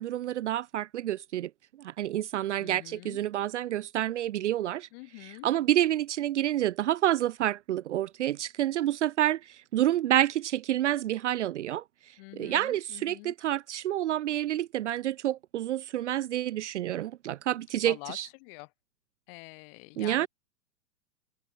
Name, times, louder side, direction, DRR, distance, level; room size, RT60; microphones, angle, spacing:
voice 1, 0.0-1.5 1.8-4.9 5.4-11.8 12.4-18.3 20.0-20.3, right 12 dB, 45° right, 0.7 m, -28 dB
voice 2, 2.6-3.2 4.9-5.5 12.2-13.3 17.8-18.7 19.3-20.3, left 32 dB, 35° left, 2.5 m, -46 dB
figure-of-eight pair, 110°, 50 cm